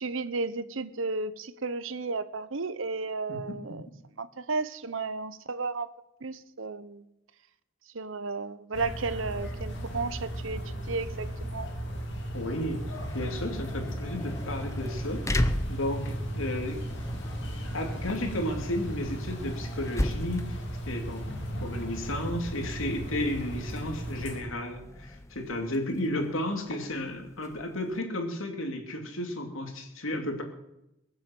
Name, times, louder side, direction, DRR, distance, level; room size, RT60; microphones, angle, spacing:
voice 1, 0.0-3.9 4.2-5.9 6.2-7.0 7.9-10.6 10.9-11.7, right 3 dB, 70° right, 14 dB, 0.8 m, -33 dB
voice 2, 3.3-3.8 12.3-16.8 17.7-21.2 21.6-30.4, left 1 dB, 75° left, 3 dB, 2.7 m, -33 dB
sound 1, 8.7-24.4, right 1 dB, 55° left, 3.1 m, -36 dB
sound 2, 12.7-28.0, left 1 dB, 15° left, 0.7 m, -37 dB
22.0 x 7.5 x 7.7 m, 0.89 s
head